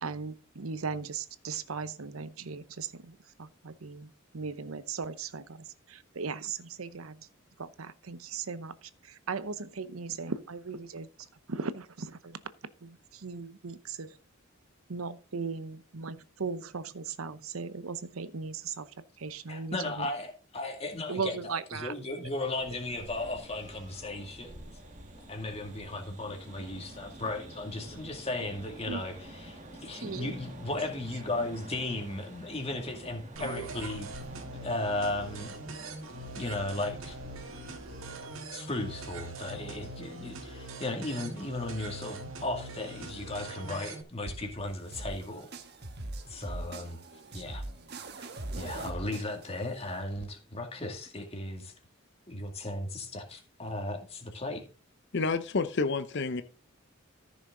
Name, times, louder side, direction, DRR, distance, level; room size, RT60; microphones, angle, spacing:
voice 1, 0.0-7.3 7.6-11.1 11.5-12.4 12.8-14.2 14.9-20.1 21.1-21.9 28.9-29.0 30.0-30.3, right 5 dB, 90° right, 0.8 m, -38 dB
voice 2, 19.5-24.7 25.3-34.1 34.6-35.5 36.3-37.2 38.5-45.5 46.3-47.0 47.3-47.6 48.2-51.7 52.3-54.6, left 2 dB, 30° left, 2.2 m, -36 dB
sound 1, 22.6-38.2, right 1 dB, 35° right, 1.7 m, -49 dB
sound 2, 33.4-44.0, right 2 dB, 75° right, 1.9 m, -42 dB
sound 3, 44.3-50.2, right 2 dB, 50° right, 1.2 m, -42 dB
voice 3, 55.1-56.4, left 4 dB, 55° left, 0.7 m, -29 dB
14.0 x 6.2 x 3.8 m
head